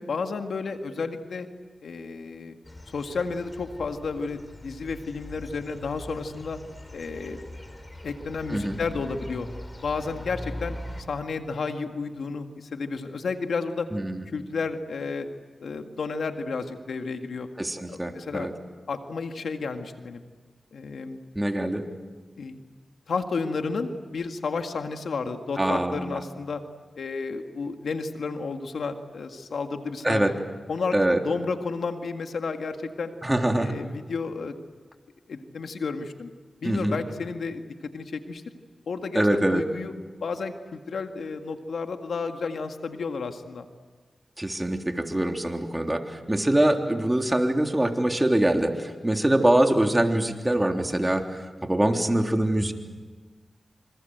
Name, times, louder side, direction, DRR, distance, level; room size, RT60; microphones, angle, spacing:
voice 1, 0.0-1.5 1.8-2.6 2.9-6.6 6.9-7.5 8.0-9.5 9.8-10.8 11.1-13.9 14.3-15.3 15.6-17.5 17.9-18.5 18.9-20.2 20.7-21.2 22.4-22.6 23.1-26.6 27.0-30.3 30.7-33.1 33.5-34.6 35.3-36.3 36.6-38.4 38.9-39.9 40.2-43.7, left 4 dB, 85° left, 6 dB, 1.9 m, -32 dB
sound 1, 2.6-11.0, left 1 dB, 30° left, 5.2 m, -41 dB
voice 2, 13.9-14.2 17.6-18.5 21.4-21.9 25.6-26.2 30.0-30.3 30.9-31.2 33.2-33.7 36.6-37.0 39.1-39.6 44.4-52.7, right 1 dB, 20° right, 4 dB, 3.5 m, -24 dB
27.5 x 26.5 x 8.0 m, 1.4 s
cardioid pair, 45°, 0 cm